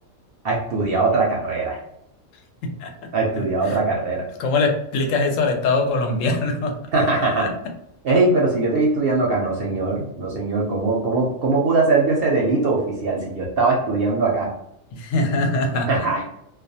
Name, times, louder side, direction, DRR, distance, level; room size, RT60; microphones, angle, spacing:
voice 1, 0.4-1.8 3.1-4.3 6.9-7.5 8.0-14.5 15.9-16.2, right 3 dB, 60° right, -2 dB, 0.6 m, -21 dB
voice 2, 3.4-3.8 4.4-6.7 7.4-7.5 14.9-15.9, left 3 dB, 80° left, 3 dB, 0.9 m, -22 dB
2.3 x 2.2 x 2.6 m, 0.81 s
omnidirectional pair, 1.3 m